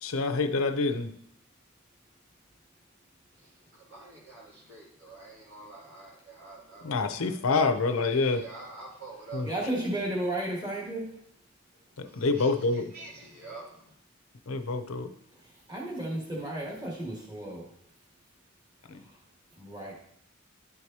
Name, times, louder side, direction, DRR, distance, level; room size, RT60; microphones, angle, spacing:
voice 1, 0.0-1.1 6.8-8.4 9.3-9.5 12.0-12.9 14.5-15.1 18.9-19.0, left 3 dB, 70° left, 8 dB, 0.6 m, -27 dB
voice 2, 3.4-7.3 8.1-9.5 12.0-12.5 12.9-13.9, right 3 dB, 75° right, -5 dB, 3.2 m, -47 dB
voice 3, 9.4-11.0 15.4-17.7 18.9-19.2 19.6-19.9, right 1 dB, 20° right, -4 dB, 1.7 m, -33 dB
11.0 x 4.7 x 2.8 m, 0.70 s
head